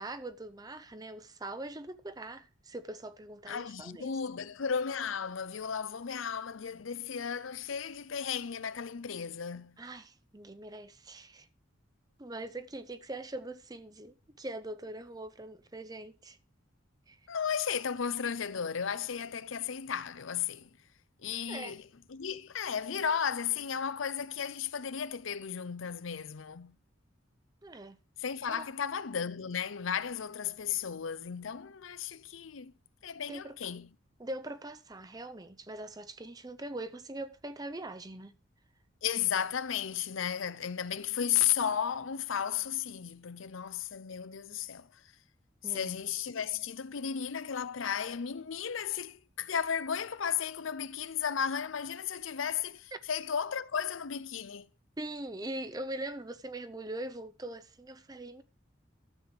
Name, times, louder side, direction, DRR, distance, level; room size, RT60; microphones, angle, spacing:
voice 1, 0.0-4.1 9.8-11.5 12.2-16.4 17.1-17.2 21.5-21.7 27.6-28.0 28.5-28.7 33.3-33.6 34.2-38.3 45.6-45.9 52.9-53.0 55.0-58.4, right 1 dB, 20° right, 0.6 m, -42 dB
voice 2, 3.5-9.8 17.3-20.7 21.2-26.7 28.2-32.7 33.0-33.9 39.0-45.0 45.6-54.6, left 8 dB, 80° left, 0.6 m, -34 dB
12.5 x 7.8 x 4.9 m
head